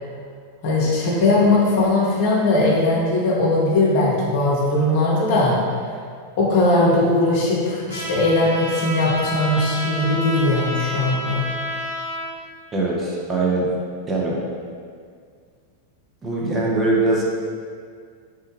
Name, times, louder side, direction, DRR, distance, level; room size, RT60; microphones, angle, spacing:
voice 1, 0.6-5.6 6.4-11.4, left 2 dB, 50° left, -4 dB, 0.7 m, -19 dB
Trumpet, 7.9-12.2, equal, 50° right, 0.8 m, -29 dB
voice 2, 12.7-13.7 14.1-14.4 16.2-17.2, right 2 dB, 20° right, -4 dB, 0.5 m, -21 dB
3.3 x 2.1 x 3.2 m, 2.1 s
figure-of-eight pair, 90°, 0 cm